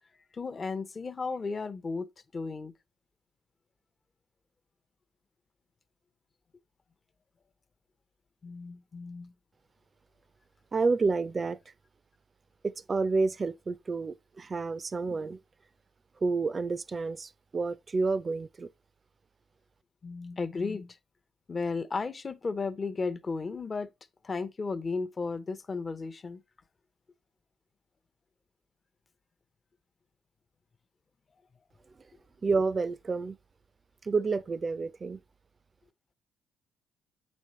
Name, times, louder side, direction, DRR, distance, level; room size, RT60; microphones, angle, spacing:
voice 1, 0.3-2.1 2.3-2.7 8.4-9.3 20.0-21.0 21.5-23.9 24.2-26.4, left 4 dB, 35° left, 0.7 m, -34 dB
voice 2, 10.7-11.6 12.6-15.4 16.2-18.7 32.4-33.4 34.0-35.2, right 4 dB, 35° right, 0.5 m, -29 dB
8.0 x 5.3 x 3.0 m
cardioid pair, 90°, 0 cm